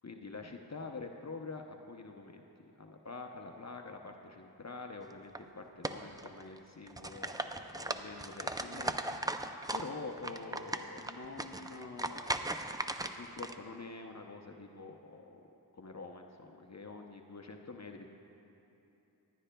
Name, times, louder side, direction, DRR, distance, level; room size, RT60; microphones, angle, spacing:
voice 1, 0.0-9.0 9.3-9.5 9.7-15.4 15.7-18.1, left 3 dB, 40° left, 3 dB, 0.7 m, -46 dB
sound 1, 5.1-5.4 5.8-6.6 6.9-9.9 10.2-13.5, right 2 dB, 10° right, 0.4 m, -37 dB
18.5 x 11.0 x 2.2 m, 2.9 s
wide cardioid pair, 45°, 41 cm